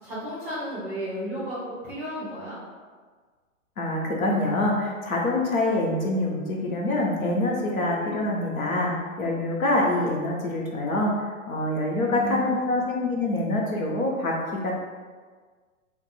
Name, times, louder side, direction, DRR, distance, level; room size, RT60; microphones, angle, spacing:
voice 1, 0.0-2.6 12.0-12.7, equal, 5° right, -11 dB, 0.7 m, -33 dB
voice 2, 3.8-11.1 11.5-14.3 14.6-14.7, left 1 dB, 80° left, -2 dB, 1.0 m, -25 dB
2.8 x 2.5 x 4.1 m, 1.5 s
hypercardioid pair, 170°, 41 cm